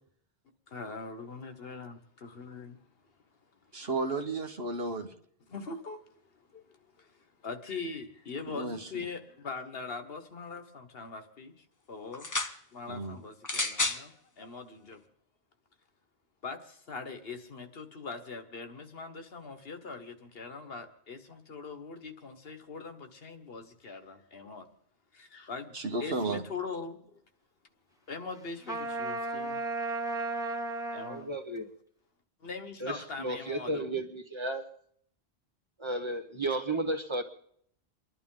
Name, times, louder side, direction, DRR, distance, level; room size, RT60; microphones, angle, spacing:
voice 1, 0.7-2.8 5.5-6.1 6.3-6.6 7.0-12.3 12.7-15.0 16.4-24.7 25.1-25.7 26.0-27.2 28.1-29.6 30.3-30.4 30.9-31.3 32.4-34.0, left 4 dB, 70° left, 1.4 m, -42 dB
voice 2, 3.7-5.1 8.5-9.0 12.9-13.2 25.7-26.4, right 3 dB, 70° right, 1.6 m, -33 dB
sound 1, 12.1-12.6 13.4-14.0 14.9-15.0, left 2 dB, 20° left, 0.8 m, -31 dB
Trumpet, 28.7-31.2, right 3 dB, 5° right, 1.1 m, -34 dB
voice 3, 31.0-31.7 32.8-34.6 35.8-37.2, right 2 dB, 30° right, 1.3 m, -33 dB
28.5 x 11.5 x 3.8 m
omnidirectional pair, 1.0 m